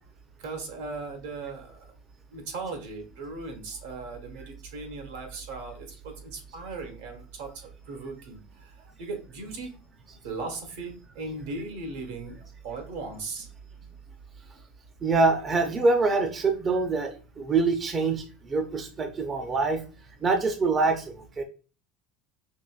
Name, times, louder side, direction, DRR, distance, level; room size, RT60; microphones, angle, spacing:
voice 1, 0.4-1.7 2.3-4.4 4.7-5.8 6.3-7.5 7.9-8.4 9.0-9.7 10.2-12.3 12.6-13.5, right 3 dB, 80° right, 3 dB, 1.4 m, -37 dB
voice 2, 15.0-19.8 20.2-21.4, right 3 dB, 30° right, 6 dB, 0.5 m, -25 dB
5.4 x 3.0 x 2.3 m, 0.37 s
supercardioid pair, 120°, 0 cm